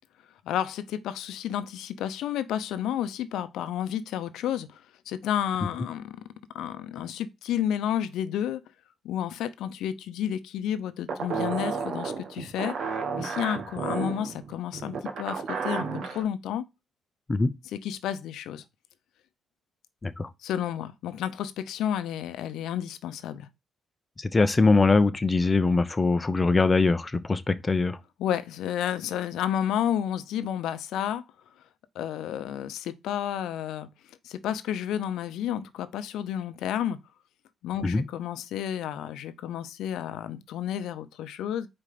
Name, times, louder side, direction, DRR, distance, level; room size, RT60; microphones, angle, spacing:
voice 1, 0.4-6.2 6.5-8.6 9.0-12.7 13.1-16.6 17.7-18.6 20.4-23.5 28.2-31.2 31.9-37.0 37.6-41.7, left 10 dB, 85° left, 0.8 m, -31 dB
sound 1, 11.1-16.2, right 5 dB, 65° right, 1.6 m, -32 dB
voice 2, 24.2-28.0 37.8-38.0, left 3 dB, 25° left, 0.8 m, -22 dB
5.0 x 4.4 x 5.8 m
cardioid pair, 90°, 0 cm